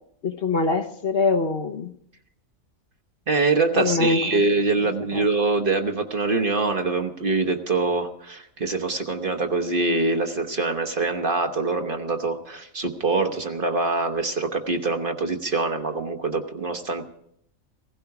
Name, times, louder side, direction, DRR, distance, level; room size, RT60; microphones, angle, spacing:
voice 1, 0.2-1.9 3.7-4.4 5.1-5.3, left 3 dB, 50° left, 4 dB, 1.0 m, -24 dB
voice 2, 3.3-17.0, right 3 dB, 45° right, 5 dB, 1.2 m, -24 dB
16.5 x 15.5 x 4.8 m, 0.71 s
omnidirectional pair, 1.4 m